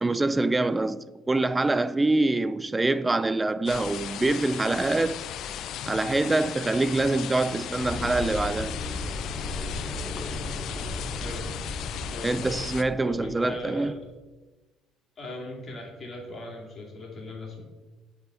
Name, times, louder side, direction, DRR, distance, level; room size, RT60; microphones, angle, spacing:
voice 1, 0.0-5.2 5.9-8.8 12.2-13.9, right 2 dB, 20° right, 0.3 m, -25 dB
sound 1, 3.7-12.8, left 10 dB, 60° left, 0.3 m, -36 dB
sound 2, 7.7-14.1, left 1 dB, 20° left, 1.8 m, -36 dB
voice 2, 13.1-14.0 15.2-17.6, left 1 dB, 40° left, 2.3 m, -39 dB
8.0 x 5.1 x 3.8 m
hypercardioid pair, 60°, 0 cm